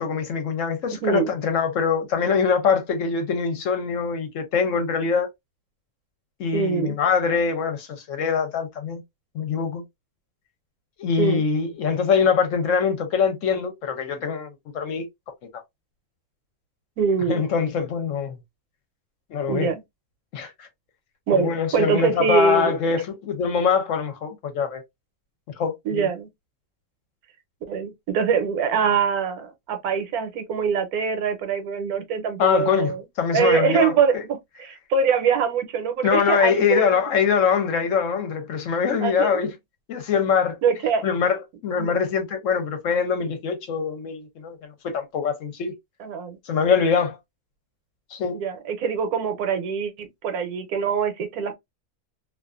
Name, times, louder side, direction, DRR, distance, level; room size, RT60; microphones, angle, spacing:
voice 1, 0.0-5.3 6.4-9.0 9.3-9.8 11.0-14.5 14.7-15.1 17.3-18.4 19.3-19.7 20.3-20.7 21.3-24.8 25.6-26.1 32.4-34.2 36.0-39.5 39.9-40.6 41.0-45.7 46.4-47.2 48.1-48.4, left 6 dB, 65° left, 0.9 m, -23 dB
voice 2, 6.5-7.0 11.2-11.4 17.0-17.4 19.5-19.8 21.3-22.8 25.8-26.3 27.7-33.0 33.3-37.0 39.0-39.4 40.6-41.0 41.8-42.0 46.0-46.4 48.3-51.5, right 6 dB, 80° right, 1.2 m, -23 dB
2.5 x 2.4 x 2.3 m
omnidirectional pair, 1.6 m